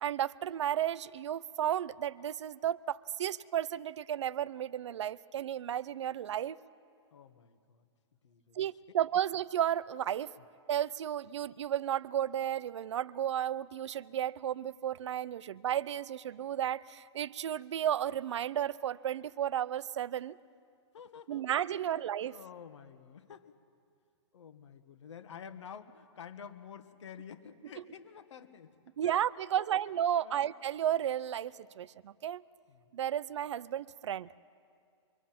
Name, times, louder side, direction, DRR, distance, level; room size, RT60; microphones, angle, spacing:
voice 1, 0.0-6.6 8.6-10.3 10.7-20.4 21.3-22.4 29.0-32.4 32.9-34.3, right 10 dB, 70° right, 20 dB, 0.5 m, -33 dB
voice 2, 7.1-7.8 8.2-8.6 20.9-21.5 21.8-23.5 24.3-28.7 29.0-29.2 29.6-30.5 32.7-32.9, left 7 dB, 75° left, 9 dB, 1.6 m, -50 dB
25.0 x 24.0 x 5.9 m, 2.3 s
hypercardioid pair, 165°, 15 cm